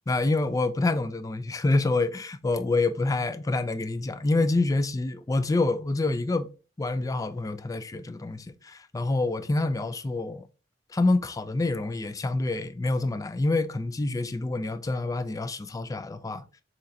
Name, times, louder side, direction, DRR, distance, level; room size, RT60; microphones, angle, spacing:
voice 1, 0.1-6.5 6.8-10.5 10.9-16.4, left 2 dB, 20° left, 0.3 m, -27 dB
6.1 x 3.2 x 2.7 m
head